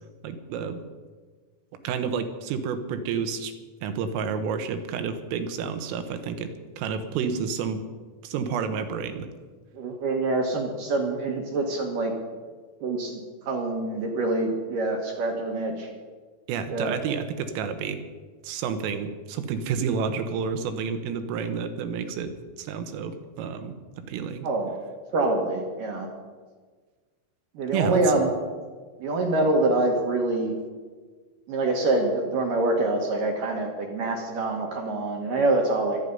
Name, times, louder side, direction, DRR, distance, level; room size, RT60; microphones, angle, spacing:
voice 1, 0.2-0.8 1.9-3.5 3.8-7.9 8.2-9.3 16.5-18.0 18.4-22.3 22.6-24.5 27.7-28.0, right 6 dB, 80° right, 8 dB, 3.7 m, -30 dB
voice 2, 9.7-12.1 12.8-15.9 16.7-17.0 24.4-24.7 25.1-26.1 27.5-28.3 29.0-30.5 31.5-36.0, right 2 dB, 65° right, 2 dB, 2.3 m, -25 dB
25.5 x 9.2 x 5.4 m, 1.4 s
omnidirectional pair, 5.9 m